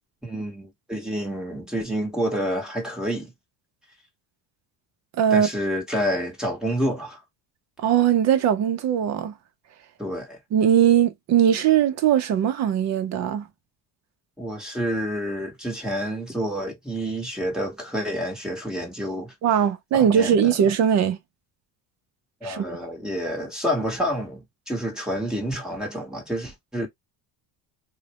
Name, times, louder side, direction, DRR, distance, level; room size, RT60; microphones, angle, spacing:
voice 1, 0.2-3.3 5.3-7.2 10.0-10.4 14.4-19.3 19.9-20.5 22.4-26.9, equal, ahead, 1.0 m, -28 dB
voice 2, 5.2-5.5 7.8-9.3 10.5-13.5 19.4-21.2 22.4-22.7, right 9 dB, 40° right, 0.6 m, -20 dB
3.9 x 2.2 x 2.8 m
cardioid pair, 180°, 41 cm